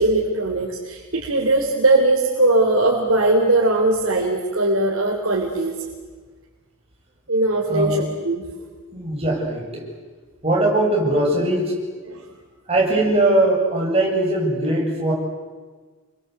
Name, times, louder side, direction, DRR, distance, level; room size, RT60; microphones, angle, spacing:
voice 1, 0.0-5.8 7.3-8.4 12.1-12.2, right 2 dB, 75° right, -1 dB, 3.8 m, -20 dB
voice 2, 7.7-8.0 8.9-9.8 10.4-11.8 12.7-15.1, right 1 dB, 30° right, -2 dB, 7.7 m, -20 dB
29.5 x 24.0 x 8.2 m, 1.4 s
head